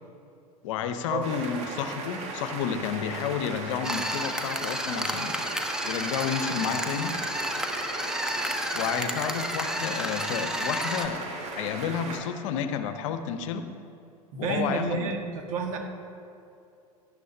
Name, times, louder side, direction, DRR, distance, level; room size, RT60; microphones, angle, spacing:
voice 1, 0.6-5.5 5.8-7.2 8.7-11.3 11.6-13.7 14.4-15.2, left 8 dB, 55° left, 9 dB, 0.8 m, -31 dB
sound 1, 1.2-12.2, right 3 dB, 35° right, 1.8 m, -37 dB
sound 2, 3.8-11.1, equal, 5° right, 1.0 m, -31 dB
voice 2, 14.3-15.8, right 4 dB, 60° right, 2 dB, 1.8 m, -30 dB
18.0 x 11.5 x 2.8 m, 2.7 s
figure-of-eight pair, 85°, 19 cm